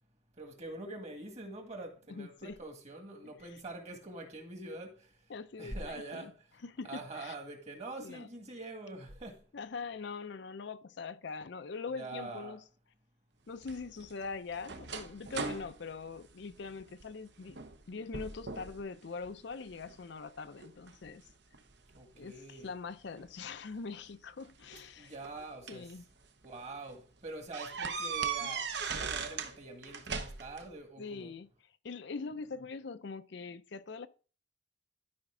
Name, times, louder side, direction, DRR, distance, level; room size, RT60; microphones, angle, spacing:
voice 1, 0.3-5.3 5.6-6.4 6.8-9.4 11.9-12.6 22.0-22.7 25.0-25.9 26.4-31.3 32.5-32.6, right 2 dB, 35° right, 1.8 m, -45 dB
voice 2, 2.1-2.6 3.2-3.6 5.3-6.3 6.6-7.3 8.0-8.3 9.5-12.6 13.5-17.6 17.9-21.2 22.2-25.1 25.7-26.0 28.4-28.5 31.0-34.1, left 4 dB, 60° left, 0.5 m, -43 dB
sound 1, 13.6-17.1 17.5-17.8 18.1-18.8 19.2-20.0 20.6-22.0 23.2-23.3 24.5-25.9 26.4-26.6 26.9-27.0 27.5-29.5 29.8-30.7, right 5 dB, 60° right, 0.8 m, -39 dB
12.0 x 5.1 x 3.7 m
head